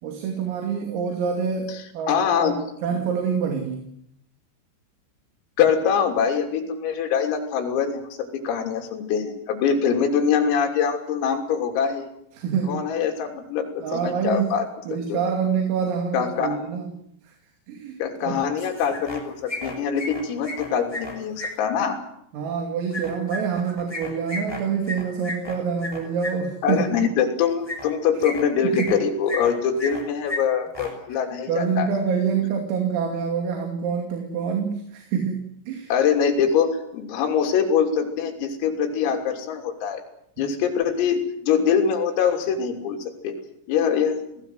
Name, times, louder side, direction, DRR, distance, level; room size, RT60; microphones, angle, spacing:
voice 1, 0.0-2.5 2.8-3.9 12.4-12.8 13.8-14.6 14.9-16.9 17.7-18.4 22.3-27.0 28.6-28.9 31.1-31.2 31.5-35.9 40.4-40.5, right 6 dB, 80° right, 3 dB, 5.3 m, -26 dB
voice 2, 2.1-2.6 5.6-12.1 12.7-15.2 16.1-16.6 18.0-22.0 26.6-31.9 35.9-40.0 40.4-43.0 43.2-43.4 43.7-44.2, left 7 dB, 80° left, 3 dB, 5.8 m, -23 dB
sound 1, 18.6-19.2 19.5-21.5 22.9-26.3 27.6-27.9 28.2-29.0 29.3-30.0 30.3-30.4 30.7-30.9, left 2 dB, 5° left, 5.8 m, -33 dB
28.0 x 18.0 x 7.9 m, 0.74 s
omnidirectional pair, 6.0 m